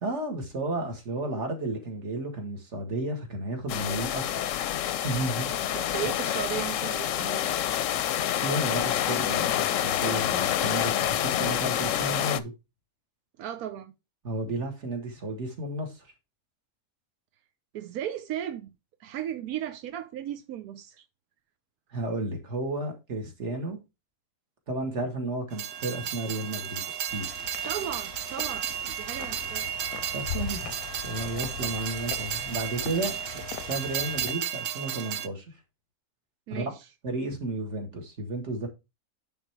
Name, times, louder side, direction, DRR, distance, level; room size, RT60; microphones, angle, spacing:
voice 1, 0.0-4.2 5.0-5.5 8.4-12.5 14.2-16.1 21.9-23.8 24.7-26.8 27.1-27.3 30.1-33.2 33.6-35.5 36.5-36.7 37.0-38.7, right 2 dB, 50° right, 2.0 m, -32 dB
sound 1, 3.7-12.4, left 11 dB, 70° left, 0.9 m, -27 dB
voice 2, 5.7-7.5 13.4-13.9 17.7-18.7 19.0-21.0 27.6-29.7 36.5-36.8, right 11 dB, 90° right, 1.2 m, -36 dB
Train, 25.5-35.3, right 10 dB, 70° right, 0.6 m, -33 dB
sound 2, 27.1-34.3, left 12 dB, 90° left, 1.1 m, -40 dB
9.9 x 3.7 x 4.5 m
omnidirectional pair, 1.5 m